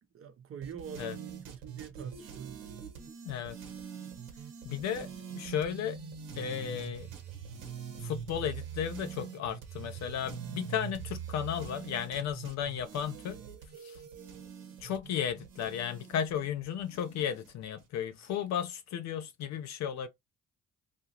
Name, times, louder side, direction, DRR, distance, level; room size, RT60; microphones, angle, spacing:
voice 1, 0.1-2.7, right 7 dB, 40° right, 0.7 m, -44 dB
sound 1, 0.6-17.8, right 8 dB, 80° right, 1.0 m, -44 dB
voice 2, 3.2-3.6 4.6-6.0 6.4-7.1 8.0-13.4 13.8-14.0 14.8-20.1, left 9 dB, 55° left, 0.5 m, -34 dB
2.7 x 2.4 x 2.8 m
hypercardioid pair, 55°, 33 cm